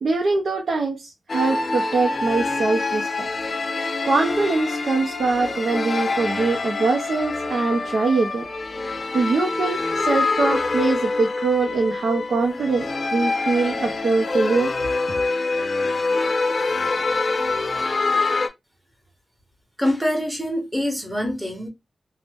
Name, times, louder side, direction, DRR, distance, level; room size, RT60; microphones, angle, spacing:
voice 1, 0.0-3.3 3.7-8.4 9.1-12.9 13.1-14.7, right 3 dB, 65° right, 0.6 m, -23 dB
sound 1, 1.3-18.5, left 3 dB, 45° left, 0.5 m, -25 dB
voice 2, 19.8-21.7, left 1 dB, 10° right, 0.9 m, -24 dB
2.6 x 2.1 x 3.3 m
wide cardioid pair, 120°, 0 cm